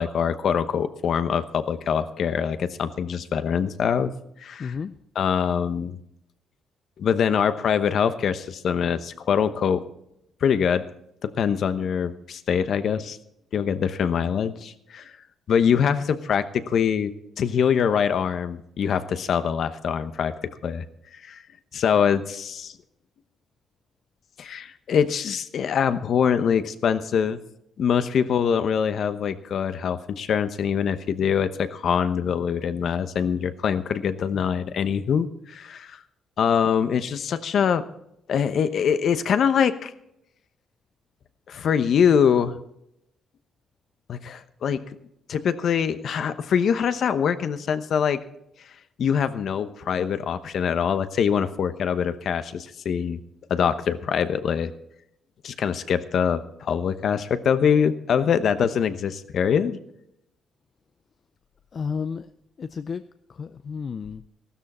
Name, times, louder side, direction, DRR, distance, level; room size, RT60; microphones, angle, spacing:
voice 1, 0.0-4.1 4.4-4.8 5.1-6.0 7.0-9.8 10.4-10.8 11.2-13.2 13.5-15.0 15.5-20.3 20.6-20.8 21.2-21.4 21.7-22.7 24.4-27.4 27.8-36.0 36.4-37.8 38.3-39.9 41.5-42.6 44.1-44.8 45.3-48.2 49.0-53.2 53.5-54.7 55.4-59.8, left 7 dB, 60° left, 11 dB, 0.9 m, -24 dB
voice 2, 4.6-5.0 61.7-62.3 62.6-63.0 63.3-64.2, left 6 dB, 45° left, 11 dB, 0.5 m, -32 dB
15.0 x 13.0 x 4.3 m, 0.78 s
cardioid pair, 90°, 0 cm